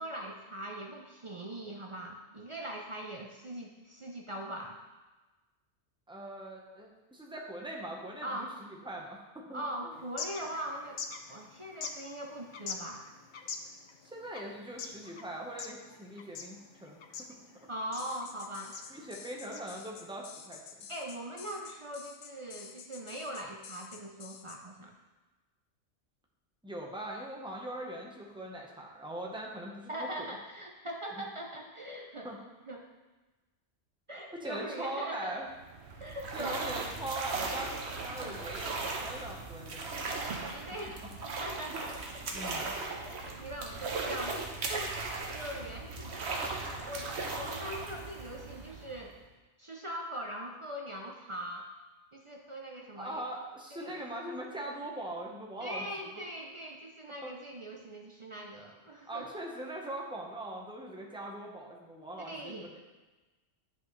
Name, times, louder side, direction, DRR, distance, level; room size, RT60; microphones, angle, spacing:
voice 1, 0.0-4.8 8.2-8.6 9.5-11.0 11.3-13.0 17.7-18.7 20.9-24.9 29.9-32.3 32.7-32.9 34.1-35.4 36.0-36.9 38.2-38.4 40.5-41.0 41.2-41.9 43.0-49.2 49.6-51.7 52.1-53.2 53.7-54.0 55.6-59.3 62.2-62.7, right 1 dB, 35° right, 0 dB, 0.6 m, -41 dB
voice 2, 6.1-9.9 14.0-17.0 18.9-20.6 26.6-30.3 31.2-31.3 32.2-32.4 34.4-35.5 36.3-40.4 42.3-42.7 53.0-55.9 57.2-57.3 59.1-62.8, right 1 dB, 5° right, -1 dB, 1.0 m, -41 dB
sound 1, 9.9-20.2, left 5 dB, 55° left, 0.6 m, -45 dB
sound 2, 18.0-24.6, left 7 dB, 80° left, 0.9 m, -49 dB
sound 3, 35.5-49.2, right 3 dB, 70° right, 1.1 m, -38 dB
9.9 x 5.5 x 3.2 m, 1.2 s
omnidirectional pair, 1.2 m